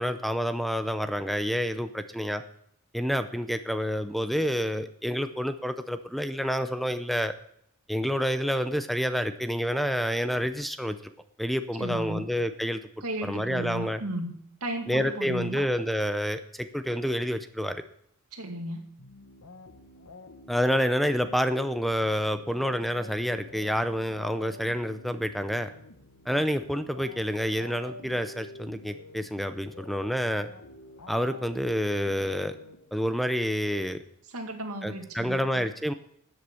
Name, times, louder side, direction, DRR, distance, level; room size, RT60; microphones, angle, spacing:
voice 1, 0.0-2.4 2.9-7.3 7.9-11.1 11.4-12.8 13.2-14.0 14.9-17.8 20.5-25.7 26.3-30.5 31.1-32.6 32.9-34.0 34.8-35.9, equal, ahead, 10 dB, 0.5 m, -28 dB
voice 2, 11.8-12.2 13.0-14.3 14.6-15.6 18.3-18.8 34.3-35.6, right 1 dB, 80° right, 4 dB, 2.3 m, -35 dB
sound 1, 19.0-33.3, left 1 dB, 85° left, 1.5 m, -48 dB
13.0 x 8.1 x 7.0 m, 0.72 s
head